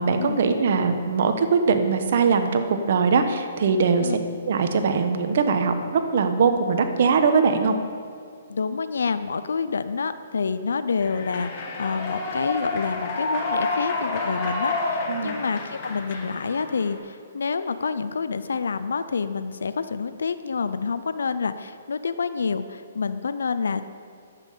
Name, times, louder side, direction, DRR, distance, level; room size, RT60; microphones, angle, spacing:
voice 1, 0.0-4.2 4.4-7.8 15.1-15.4, right 5 dB, 60° right, 7 dB, 1.1 m, -21 dB
voice 2, 8.5-24.0, left 5 dB, 85° left, 12 dB, 0.5 m, -28 dB
Human voice / Clapping / Cheering, 11.0-17.0, left 3 dB, 35° left, 1.8 m, -29 dB
10.5 x 7.6 x 6.8 m, 2.2 s
hypercardioid pair, 150°, 0 cm